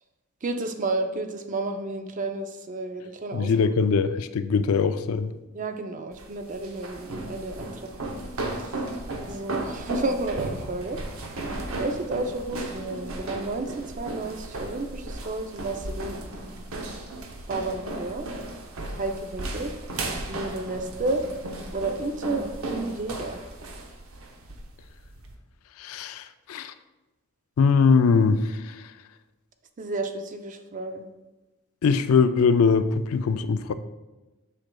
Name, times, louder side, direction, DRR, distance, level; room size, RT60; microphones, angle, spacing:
voice 1, 0.4-3.5 5.5-8.2 8.6-8.8 9.3-11.0 11.8-16.3 17.5-18.3 18.9-19.7 20.3-21.2 21.7-22.4 22.7-23.4 29.8-31.1, right 2 dB, 35° right, 6 dB, 0.5 m, -31 dB
voice 2, 3.3-5.3 25.8-26.7 27.6-28.8 31.8-33.7, left 5 dB, 70° left, 11 dB, 0.4 m, -22 dB
sound 1, 6.1-25.3, right 2 dB, 65° right, 0.8 m, -35 dB
7.6 x 6.1 x 2.3 m, 1.1 s
head